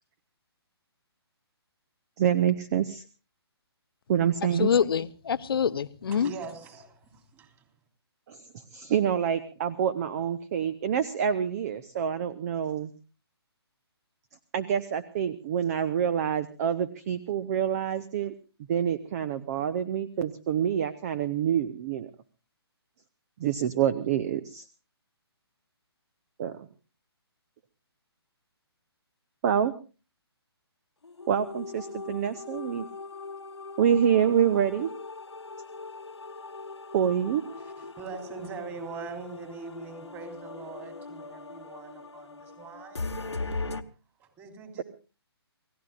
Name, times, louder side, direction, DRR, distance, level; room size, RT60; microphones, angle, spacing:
voice 1, 2.2-3.0 4.1-4.7 8.3-8.4 8.7-12.9 14.5-18.3 18.7-22.1 23.4-24.7 26.4-26.7 29.4-29.7 31.3-32.9 33.8-34.9 36.9-37.4, right 9 dB, 35° right, 15 dB, 1.0 m, -26 dB
voice 2, 4.6-6.3, left 7 dB, 60° left, 14 dB, 0.9 m, -25 dB
voice 3, 6.1-7.7 37.6-43.1 44.2-44.8, right 5 dB, 20° right, 6 dB, 3.5 m, -42 dB
sound 1, 31.0-43.8, left 3 dB, 85° left, 1.4 m, -40 dB
29.5 x 17.0 x 2.5 m, 0.34 s
figure-of-eight pair, 140°, 14 cm